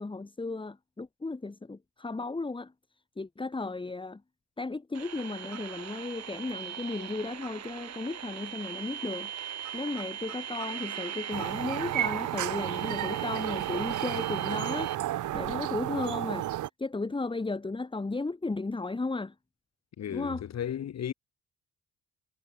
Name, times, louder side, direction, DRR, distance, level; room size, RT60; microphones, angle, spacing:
voice 1, 0.0-2.7 3.2-4.2 4.6-9.3 9.7-14.9 15.3-16.5 16.8-19.3 20.1-20.4, left 3 dB, 15° left, 1.8 m, -35 dB
sound 1, 4.9-15.0, right 9 dB, 60° right, 3.5 m, -40 dB
sound 2, 11.3-16.7, right 13 dB, 80° right, 2.2 m, -32 dB
voice 2, 20.0-21.1, left 9 dB, 60° left, 2.8 m, -34 dB
cardioid pair, 90°, 30 cm